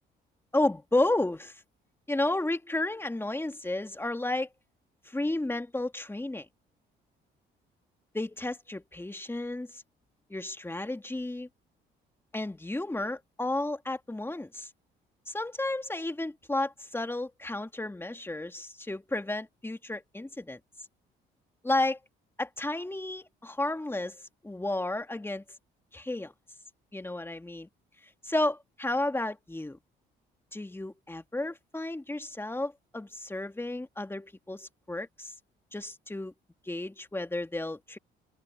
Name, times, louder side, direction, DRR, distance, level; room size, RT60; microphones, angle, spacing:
voice 1, 0.5-1.6 2.1-4.5 5.1-6.5 8.1-9.8 10.3-11.5 12.3-14.7 15.3-20.6 21.6-22.0 22.4-24.2 24.4-25.4 25.9-26.3 26.9-27.7 28.2-29.8 30.5-35.3 35.7-36.3 36.7-38.0, left 2 dB, 10° left, 2.2 m, -32 dB
supercardioid pair, 65°, 21 cm